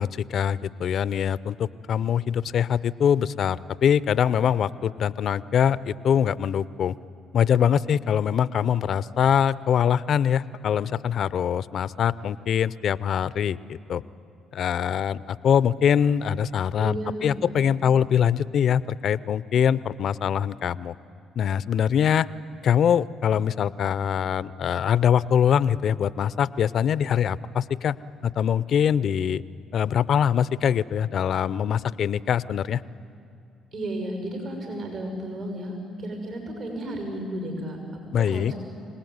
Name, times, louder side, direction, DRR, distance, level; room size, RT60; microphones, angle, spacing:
voice 1, 0.0-6.9 7.3-14.0 14.5-20.9 21.4-22.3 22.6-28.0 28.2-29.4 29.7-32.8 38.1-38.5, left 8 dB, 60° left, 18 dB, 0.5 m, -23 dB
voice 2, 16.8-17.5 33.7-37.8 38.2-38.6, right 1 dB, 65° right, 2 dB, 6.1 m, -33 dB
26.0 x 19.0 x 9.5 m, 2.5 s
supercardioid pair, 60°, 0 cm